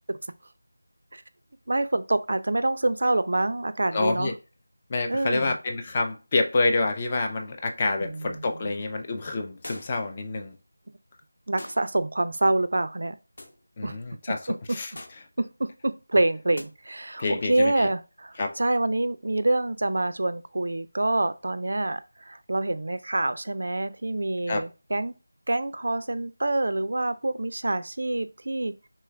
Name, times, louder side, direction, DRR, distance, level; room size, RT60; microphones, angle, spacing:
voice 1, 1.7-4.3 5.1-5.6 8.0-8.2 11.5-13.2 13.8-14.0 15.4-22.0 22.3-25.2 25.5-28.7, right 2 dB, 60° right, 0.3 m, -26 dB
voice 2, 3.9-4.4 4.9-10.6 13.8-14.9 17.2-17.9 18.4-18.5 24.5-24.6, left 3 dB, 25° left, 0.3 m, -27 dB
sound 1, 9.6-10.1 11.6-11.9 13.4-13.6 14.9-15.3 16.5-16.7, left 1 dB, 55° left, 0.8 m, -42 dB
3.2 x 2.3 x 3.2 m
figure-of-eight pair, 170°, 0 cm